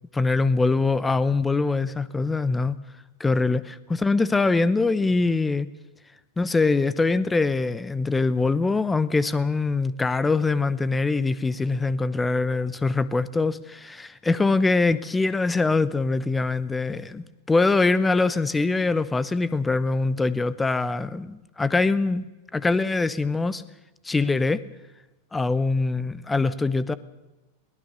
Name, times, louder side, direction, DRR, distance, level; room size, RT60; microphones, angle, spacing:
voice 1, 0.1-2.8 3.2-5.7 6.4-22.2 22.5-23.6 24.0-24.6 25.3-26.9, left 3 dB, 10° left, 17 dB, 0.8 m, -23 dB
21.5 x 18.5 x 6.7 m, 1.1 s
figure-of-eight pair, 90°, 0 cm